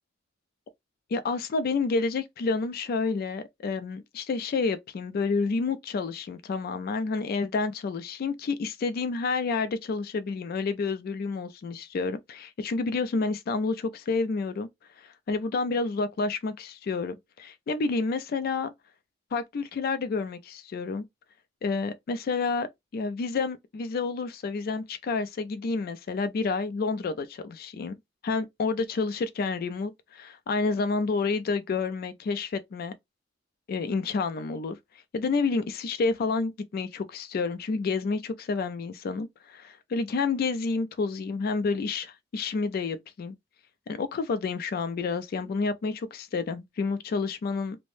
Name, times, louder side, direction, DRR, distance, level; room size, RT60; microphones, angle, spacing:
voice 1, 1.1-14.7 15.0-18.7 19.3-21.0 21.6-22.7 22.9-28.0 28.2-32.9 33.7-34.8 35.1-43.3 43.9-47.8, left 4 dB, 50° left, 0.3 m, -29 dB
3.2 x 2.1 x 2.5 m
head